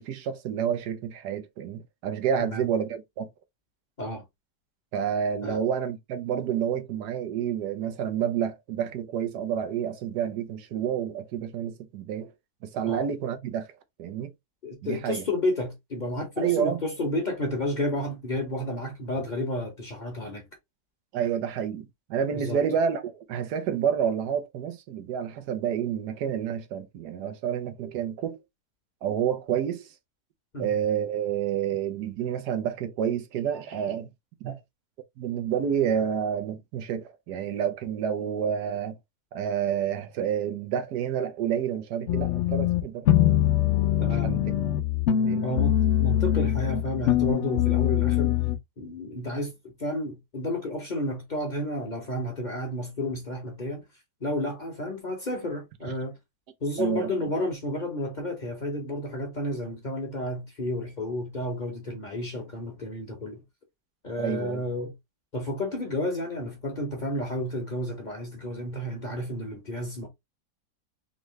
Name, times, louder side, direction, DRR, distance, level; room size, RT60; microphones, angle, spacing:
voice 1, 0.0-3.3 4.9-12.3 12.6-13.7 14.0-14.3 14.8-15.2 16.4-16.8 21.1-28.4 29.0-29.9 30.6-34.1 34.4-34.6 35.2-39.0 39.3-43.1 44.0-44.4 45.2-45.6 56.8-57.1 64.2-64.6, right 8 dB, 85° right, 1.3 m, -29 dB
voice 2, 14.6-20.4 22.3-22.6 30.5-30.7 44.0-44.4 45.4-48.4 48.8-53.8 54.2-56.2 56.6-63.4 64.0-64.9 65.3-70.1, left 1 dB, 35° left, 0.9 m, -31 dB
sound 1, 42.1-48.6, left 12 dB, 60° left, 0.8 m, -23 dB
3.8 x 3.1 x 3.2 m
omnidirectional pair, 1.7 m